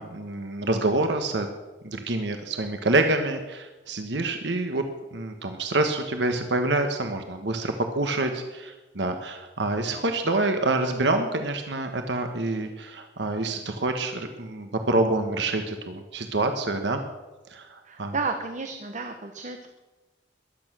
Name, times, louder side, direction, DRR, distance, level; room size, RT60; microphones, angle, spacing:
voice 1, 0.0-1.5 1.8-4.8 5.1-17.0 17.5-18.1, right 2 dB, 70° right, 5 dB, 1.3 m, -27 dB
voice 2, 17.8-19.7, right 4 dB, 45° right, 6 dB, 1.0 m, -32 dB
21.5 x 8.8 x 6.2 m, 1.1 s
head